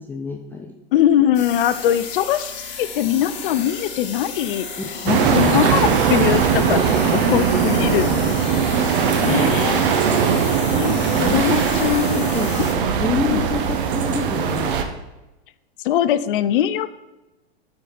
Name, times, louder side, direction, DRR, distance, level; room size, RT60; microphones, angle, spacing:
voice 1, 0.0-0.7 5.2-5.6 6.6-8.3 8.9-9.6 10.6-11.4 11.7-14.8, left 4 dB, 5° left, 1 dB, 0.4 m, -29 dB
voice 2, 0.9-4.7 5.0-6.8 7.1-8.1 9.2-9.9 10.7-12.3 12.6-12.7 13.2-13.4 15.8-16.9, left 11 dB, 55° left, 14 dB, 0.5 m, -21 dB
sound 1, 1.3-12.7, left 5 dB, 35° left, 1.5 m, -34 dB
sound 2, 5.1-14.8, right 7 dB, 55° right, 1.0 m, -20 dB
8.8 x 4.4 x 4.2 m, 1.0 s
hypercardioid pair, 110°, 32 cm